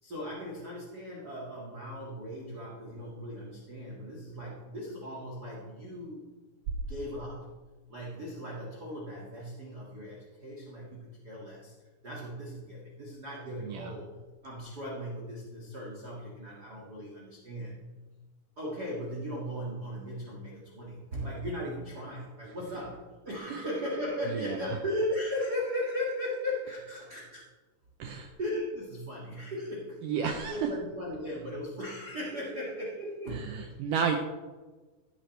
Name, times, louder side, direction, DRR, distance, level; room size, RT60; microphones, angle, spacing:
voice 1, 0.0-6.3 6.9-7.5 7.9-11.7 12.0-14.1 14.4-17.8 18.6-27.4 28.4-33.7, equal, 35° right, -5 dB, 1.6 m, -37 dB
voice 2, 13.6-13.9 23.5-23.6 24.3-24.7 28.0-28.3 30.0-30.7 33.3-34.2, right 7 dB, 85° right, 4 dB, 1.8 m, -32 dB
15.5 x 9.0 x 3.3 m, 1.3 s
omnidirectional pair, 4.7 m